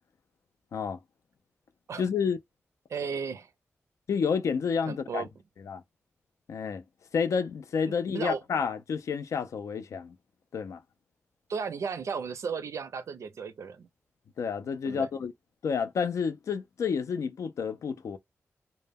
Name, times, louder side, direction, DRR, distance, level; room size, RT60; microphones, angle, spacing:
voice 1, 2.0-2.4 4.1-5.3 5.7-5.8 6.5-6.8 7.1-10.1 10.5-10.8 14.4-15.3 15.6-18.2, left 6 dB, 75° left, 0.4 m, -30 dB
voice 2, 2.9-3.5 4.9-5.3 8.1-8.4 11.5-13.9 14.8-15.1, right 6 dB, 75° right, 0.4 m, -34 dB
2.1 x 2.1 x 3.4 m
wide cardioid pair, 115°, 5 cm